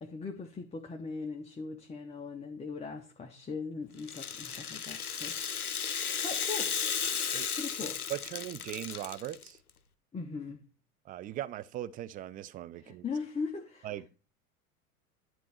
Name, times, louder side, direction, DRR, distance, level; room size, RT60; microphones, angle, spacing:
voice 1, 0.0-5.9 6.2-6.7 7.6-8.0 10.1-10.6 12.8-13.9, left 4 dB, 15° left, 1.0 m, -40 dB
Rattle (instrument), 4.0-9.5, left 7 dB, 90° left, 0.7 m, -34 dB
voice 2, 8.1-9.6 11.0-13.0 13.8-14.1, right 13 dB, 20° right, 0.4 m, -39 dB
10.5 x 3.8 x 7.4 m
figure-of-eight pair, 85°, 43 cm